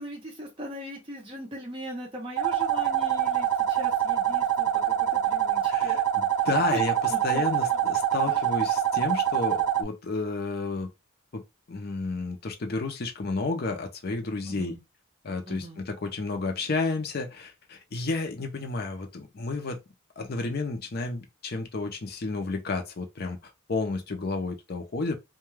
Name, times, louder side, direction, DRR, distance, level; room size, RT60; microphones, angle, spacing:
voice 1, 0.0-6.0 6.7-6.8 7.1-7.4 8.3-8.5 14.4-14.8 15.5-15.8, right 1 dB, 25° right, 0.6 m, -39 dB
sound 1, 2.4-9.8, right 10 dB, 85° right, 0.3 m, -25 dB
voice 2, 5.7-10.9 11.3-11.4 11.7-14.8 15.2-19.8 20.2-25.1, left 3 dB, 45° left, 0.5 m, -31 dB
2.2 x 2.2 x 3.1 m
head